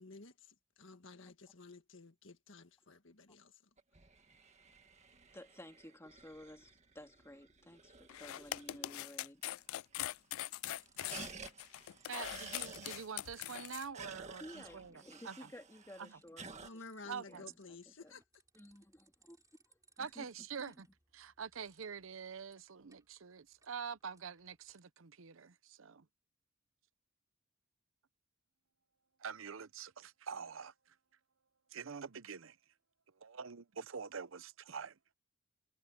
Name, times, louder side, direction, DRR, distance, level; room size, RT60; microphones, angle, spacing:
voice 1, 0.0-3.6 16.6-18.2, left 3 dB, 65° left, 1.8 m, -53 dB
sound 1, 3.8-9.1 9.4-9.5 9.7-10.2 10.5-16.7, right 5 dB, 35° right, 1.9 m, -53 dB
voice 2, 5.3-9.4 14.4-18.1 18.5-20.3, left 1 dB, 15° left, 2.1 m, -55 dB
sound 2, 8.1-13.9, left 14 dB, 90° left, 0.3 m, -42 dB
sound 3, 10.6-11.7 11.9-24.8, right 4 dB, 15° right, 4.6 m, -72 dB
voice 3, 12.1-15.5 16.0-16.2 17.1-17.4 20.0-20.9 21.1-26.1 29.2-31.0 31.7-32.6 33.2-35.0, right 6 dB, 75° right, 0.7 m, -46 dB
head